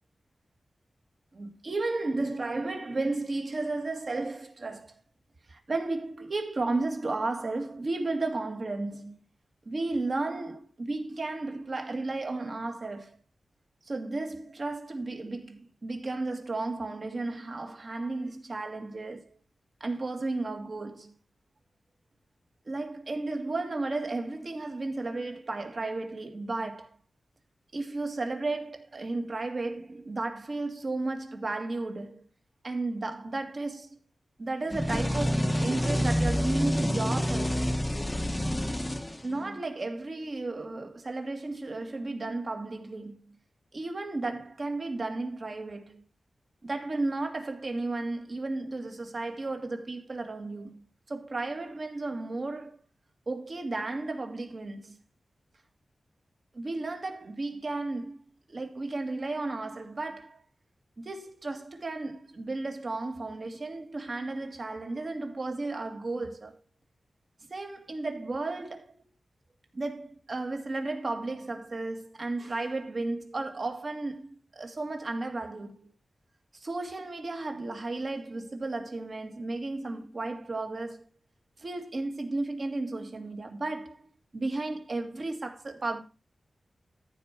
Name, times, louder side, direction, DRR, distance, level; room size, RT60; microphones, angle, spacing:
voice 1, 1.3-5.0 5.5-9.2 9.7-13.2 13.8-19.4 19.8-21.1 22.7-26.9 27.7-32.3 32.6-34.0 34.4-37.6 39.2-43.4 43.7-46.0 46.6-52.8 53.3-55.0 56.5-58.2 58.5-60.4 61.0-66.6 67.5-69.0 69.7-75.9 76.5-81.1 81.6-86.0, right 2 dB, 40° right, 1.9 m, -34 dB
sound 1, 34.7-39.6, equal, 10° left, 0.9 m, -28 dB
14.0 x 4.7 x 5.8 m
wide cardioid pair, 145°, 0 cm